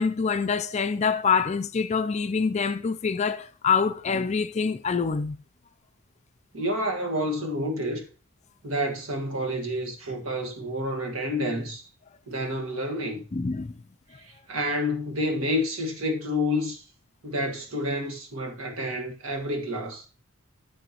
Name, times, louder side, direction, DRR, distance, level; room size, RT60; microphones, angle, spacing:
voice 1, 0.0-5.4 13.3-13.7, left 5 dB, 30° left, 0.4 m, -25 dB
voice 2, 6.5-8.0 8.6-11.9 12.3-13.2 14.2-16.8 17.2-20.1, left 1 dB, 70° right, 1.7 m, -29 dB
10.0 x 7.5 x 2.9 m
head